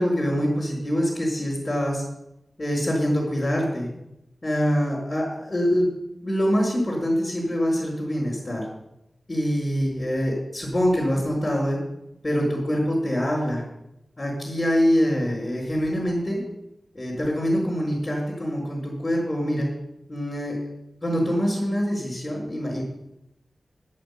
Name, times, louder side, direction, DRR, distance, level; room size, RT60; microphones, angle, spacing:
voice 1, 0.0-2.0 2.6-3.9 4.4-5.9 6.2-8.6 9.3-11.8 12.2-13.6 14.2-16.4 16.9-19.7 20.1-20.6 21.0-22.8, equal, 25° left, -7 dB, 5.1 m, -24 dB
9.7 x 8.3 x 8.5 m, 0.85 s
wide cardioid pair, 80°, 0 cm